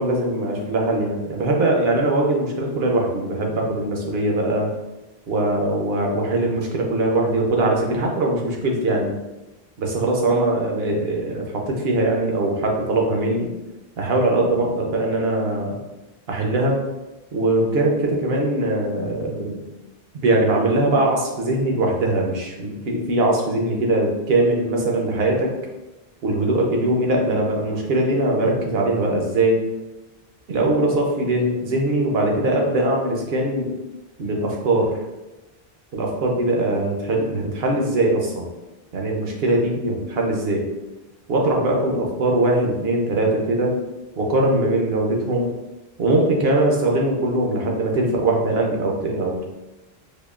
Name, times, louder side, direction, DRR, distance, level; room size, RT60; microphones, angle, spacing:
voice 1, 0.0-4.7 5.3-9.2 9.8-13.5 14.0-15.8 16.3-16.8 17.3-19.6 20.1-25.5 26.2-29.6 30.5-33.7 34.2-35.0 35.9-38.5 38.9-40.6 41.3-43.8 44.2-45.5 46.0-49.5, right 2 dB, 75° right, 0 dB, 0.9 m, -21 dB
5.0 x 2.3 x 2.3 m, 1.0 s
omnidirectional pair, 1.0 m